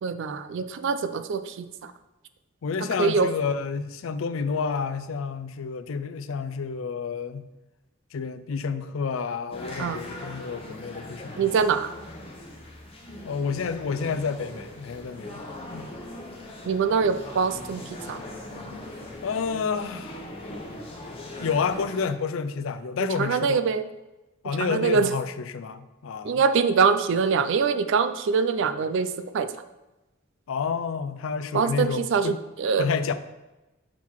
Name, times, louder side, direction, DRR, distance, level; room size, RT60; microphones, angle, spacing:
voice 1, 0.0-1.9 3.0-3.3 9.8-10.0 11.4-11.9 16.7-18.2 23.0-23.9 24.6-25.1 26.2-29.5 31.5-32.9, right 5 dB, 65° right, 11 dB, 0.4 m, -24 dB
voice 2, 2.6-7.5 8.1-11.5 13.2-15.9 19.2-20.3 21.4-23.6 24.4-26.4 30.5-32.4 32.8-33.1, left 5 dB, 85° left, 11 dB, 0.4 m, -29 dB
sound 1, 9.5-22.1, left 1 dB, 30° left, 1.1 m, -40 dB
6.0 x 3.7 x 4.5 m, 1.0 s
head